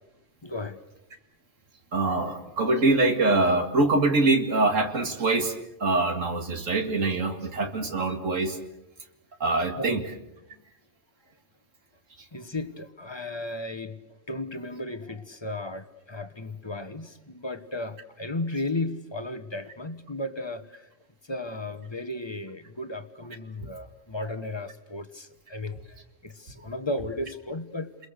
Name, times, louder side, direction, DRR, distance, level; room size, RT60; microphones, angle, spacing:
voice 1, 0.4-0.8 9.8-10.1 10.5-10.6 12.3-20.9 21.2-26.0 26.2-28.0, left 2 dB, 20° left, 10 dB, 1.1 m, -35 dB
voice 2, 1.9-5.5 5.8-8.6 9.4-10.0, right 2 dB, 70° right, 6 dB, 2.5 m, -24 dB
30.0 x 21.5 x 6.7 m, 0.91 s
omnidirectional pair, 1.4 m